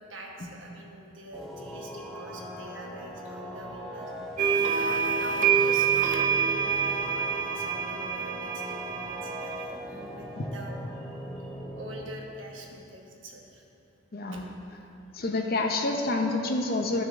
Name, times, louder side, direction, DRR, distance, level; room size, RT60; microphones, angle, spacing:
voice 1, 0.0-4.1 4.7-13.6 14.3-14.4, right 1 dB, 70° right, -1 dB, 1.2 m, -45 dB
sound 1, 1.3-12.0, equal, ahead, 1.1 m, -40 dB
sound 2, 4.4-9.7, right 7 dB, 40° right, 0.5 m, -26 dB
voice 2, 14.1-14.5 15.1-17.0, left 2 dB, 50° left, 3 dB, 0.8 m, -28 dB
12.0 x 6.3 x 3.7 m, 2.7 s
head